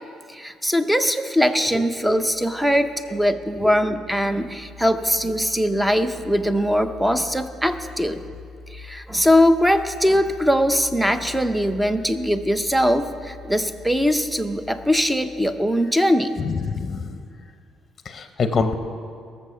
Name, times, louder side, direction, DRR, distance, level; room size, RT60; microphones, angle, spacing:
voice 1, 0.3-8.2 8.7-16.4, equal, 5° right, 10 dB, 0.6 m, -21 dB
sound 1, 2.0-16.1, left 3 dB, 80° right, 2.8 m, -44 dB
voice 2, 16.4-17.1 18.0-18.7, left 4 dB, 30° left, 8 dB, 0.8 m, -25 dB
17.0 x 7.0 x 7.0 m, 2.3 s
cardioid pair, 130°, 0 cm